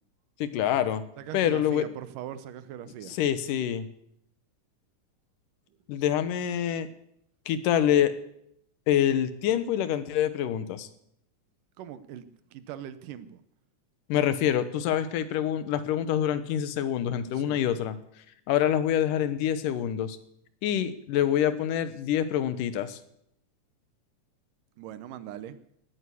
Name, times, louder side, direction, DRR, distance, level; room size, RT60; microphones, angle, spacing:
voice 1, 0.4-1.0 1.3-1.9 3.1-3.9 5.9-6.9 7.5-8.1 8.9-10.9 14.1-18.0 18.5-20.2 20.6-23.0, left 10 dB, 85° left, 13 dB, 2.6 m, -26 dB
voice 2, 1.2-3.2 11.8-13.4 17.3-17.6 24.8-25.6, right 11 dB, 90° right, 13 dB, 2.6 m, -41 dB
18.0 x 9.4 x 8.4 m, 0.74 s
omnidirectional pair, 3.7 m